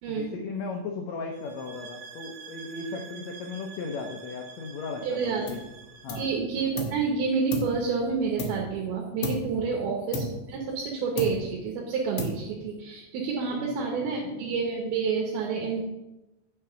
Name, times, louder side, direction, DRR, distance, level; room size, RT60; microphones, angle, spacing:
voice 1, 0.1-5.6 6.0-6.3 9.5-9.8 13.5-14.2, left 4 dB, 85° left, 2 dB, 1.5 m, -36 dB
sound 1, 1.3-6.4, right 6 dB, 65° right, 2.8 m, -47 dB
voice 2, 5.0-5.4 6.2-15.8, right 5 dB, 80° right, -1 dB, 3.0 m, -29 dB
sound 2, 5.5-5.8 6.1-7.1 7.5-8.8 9.2-9.6 10.1-10.9 11.2-11.7 12.2-12.7, left 1 dB, 65° left, 1.6 m, -34 dB
8.7 x 5.9 x 5.7 m, 0.98 s
omnidirectional pair, 4.3 m